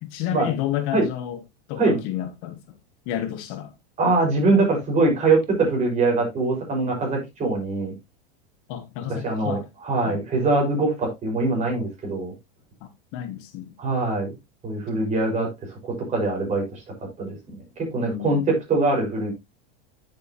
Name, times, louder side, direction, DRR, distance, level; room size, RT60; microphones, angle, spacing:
voice 1, 0.0-1.4 1.7-2.8 3.0-3.7 8.7-9.6 10.0-10.2 12.8-13.7 18.0-18.5, left 12 dB, 45° left, 1.3 m, -31 dB
voice 2, 4.0-7.9 9.2-12.3 13.8-14.3 14.6-15.5 15.8-16.8 17.2-19.3, right 3 dB, 25° right, 6.0 m, -23 dB
9.8 x 7.6 x 3.1 m
supercardioid pair, 155°, 30 cm